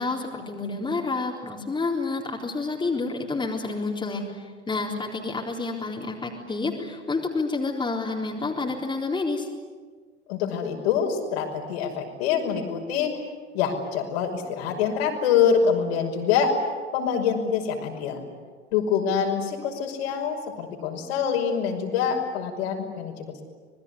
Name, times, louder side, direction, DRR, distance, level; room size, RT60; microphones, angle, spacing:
voice 1, 0.0-9.5, left 3 dB, 15° left, 0 dB, 3.9 m, -29 dB
voice 2, 10.3-13.2 13.5-16.5 16.9-18.2 18.7-23.4, left 7 dB, 60° left, 2 dB, 5.7 m, -25 dB
26.5 x 20.5 x 9.8 m, 1.5 s
figure-of-eight pair, 85°, 35 cm